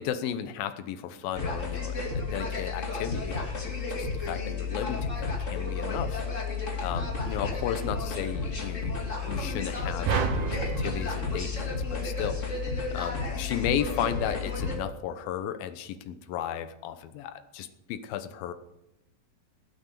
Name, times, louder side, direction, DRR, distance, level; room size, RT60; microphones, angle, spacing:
voice 1, 0.0-6.2 6.8-9.0 9.3-12.4 12.9-18.5, left 10 dB, 70° left, 10 dB, 2.4 m, -34 dB
sound 1, 1.3-14.8, left 4 dB, 25° left, 2.1 m, -32 dB
sound 2, 10.1-12.5, right 8 dB, 85° right, 1.6 m, -32 dB
18.5 x 8.6 x 6.8 m, 0.88 s
omnidirectional pair, 4.8 m